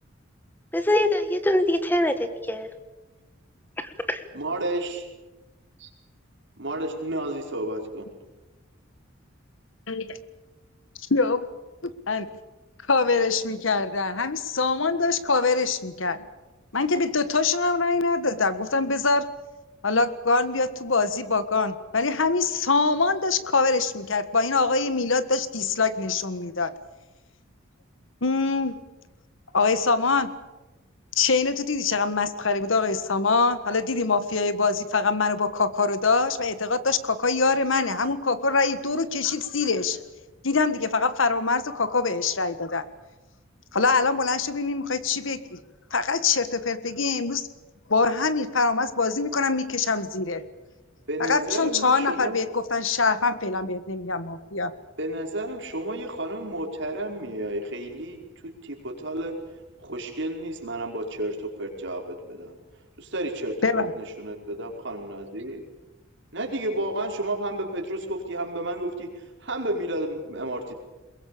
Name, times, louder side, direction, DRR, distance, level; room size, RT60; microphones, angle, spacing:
voice 1, 0.7-2.7 4.1-4.2, left 1 dB, 10° left, 10 dB, 1.3 m, -23 dB
voice 2, 4.3-5.0 6.6-8.1 51.1-52.4 55.0-59.5 59.8-62.6 63.0-65.6 66.3-70.7, right 1 dB, 65° right, 1 dB, 5.2 m, -31 dB
voice 3, 9.9-10.2 11.1-11.5 11.8-12.3 12.9-16.2 16.7-19.3 19.8-26.7 28.2-28.7 29.5-30.3 31.1-40.0 40.4-42.8 43.7-45.6 45.9-47.5 47.9-50.4 51.2-54.7 63.6-63.9, left 4 dB, 75° left, 13 dB, 1.5 m, -24 dB
22.5 x 22.0 x 8.7 m, 1.1 s
head